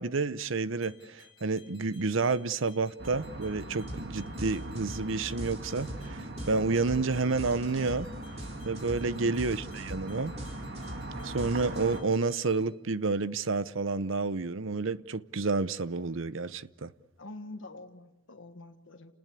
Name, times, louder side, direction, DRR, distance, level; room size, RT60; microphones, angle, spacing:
voice 1, 0.0-8.1 8.6-10.3 11.2-16.9, right 3 dB, 70° right, 0.8 m, -30 dB
sound 1, 0.8-12.7, left 6 dB, 25° left, 7.7 m, -60 dB
sound 2, 3.0-12.0, right 1 dB, 55° right, 2.6 m, -41 dB
sound 3, 3.9-4.1 4.4-12.2, equal, 30° right, 3.8 m, -42 dB
voice 2, 17.2-19.1, left 2 dB, 65° left, 1.4 m, -46 dB
30.0 x 19.5 x 8.3 m
head